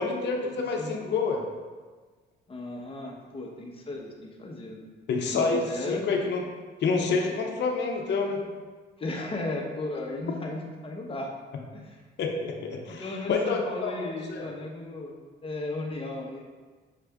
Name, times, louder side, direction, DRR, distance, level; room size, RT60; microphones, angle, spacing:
voice 1, 0.0-1.4 5.1-6.4 6.8-8.4 12.2-13.9 14.3-14.5, left 4 dB, 60° left, 1 dB, 0.7 m, -28 dB
voice 2, 2.5-4.9 5.3-6.0 9.0-11.3 11.7-12.0 12.9-16.4, left 2 dB, 30° left, 0 dB, 0.8 m, -35 dB
5.7 x 2.5 x 3.4 m, 1.4 s
cardioid pair, 90°, 20 cm